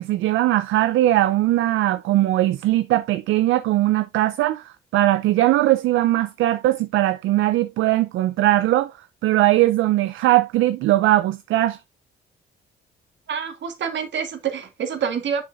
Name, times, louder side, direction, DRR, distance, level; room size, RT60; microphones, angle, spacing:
voice 1, 0.0-8.9 9.2-11.8, right 15 dB, 80° right, 0.5 m, -20 dB
voice 2, 13.3-15.4, right 7 dB, 65° right, 1.8 m, -27 dB
7.0 x 5.9 x 2.5 m
cardioid pair, 90°, 20 cm